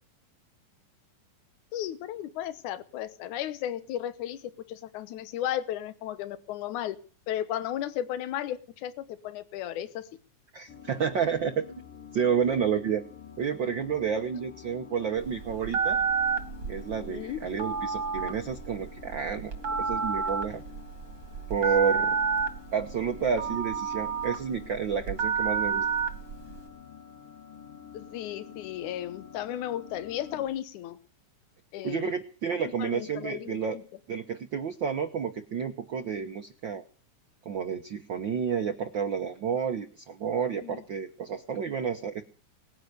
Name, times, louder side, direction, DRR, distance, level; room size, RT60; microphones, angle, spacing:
voice 1, 1.7-4.4 4.7-7.0 7.3-10.1 17.1-17.4 27.9-31.0 31.7-32.2 32.7-33.8 40.6-40.8, left 11 dB, 75° left, 13 dB, 2.4 m, -34 dB
voice 2, 10.5-11.8 12.1-13.0 13.4-16.0 16.7-19.5 19.8-20.6 21.5-22.2 22.7-25.9 31.8-33.8 34.1-36.8 37.4-42.2, right 7 dB, 75° right, 5 dB, 1.0 m, -30 dB
sound 1, 10.7-30.5, left 8 dB, 90° left, 5.3 m, -48 dB
Telephone, 15.2-26.6, right 5 dB, 40° right, 2.2 m, -30 dB
20.0 x 9.9 x 6.7 m, 0.41 s
omnidirectional pair, 3.7 m